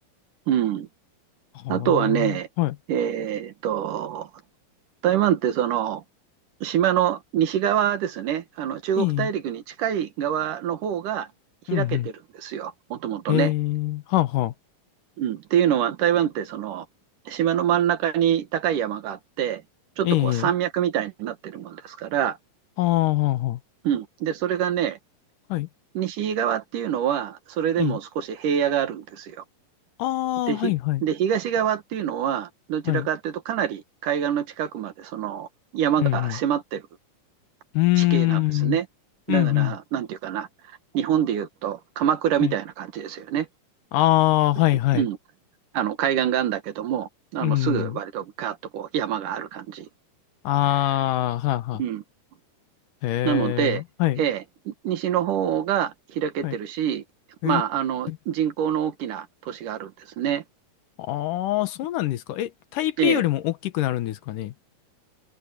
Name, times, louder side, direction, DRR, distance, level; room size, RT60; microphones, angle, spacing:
voice 1, 0.5-0.9 1.7-2.5 2.9-4.3 5.0-6.0 6.6-11.3 11.7-13.5 15.2-16.9 17.3-19.6 20.0-22.4 23.8-25.0 25.9-29.4 30.5-30.7 31.0-35.5 35.7-36.8 38.0-38.9 39.3-43.5 44.9-45.2 45.7-49.9 51.8-52.0 53.2-53.8 54.2-57.0 57.4-59.9 60.2-60.4 63.0-63.2, right 10 dB, 70° right, 2.9 m, -25 dB
voice 2, 1.6-2.8 9.0-9.3 11.7-12.1 13.3-14.5 20.0-20.5 22.8-23.6 25.5-25.7 27.8-28.0 30.0-31.0 32.9-33.1 36.0-36.4 37.7-38.8 39.3-39.7 42.4-42.6 43.9-45.1 47.4-48.0 50.4-51.8 53.0-54.2 56.4-56.5 57.4-57.6 58.1-58.2 61.0-64.5, left 16 dB, 75° left, 2.4 m, -23 dB
open air
omnidirectional pair, 3.9 m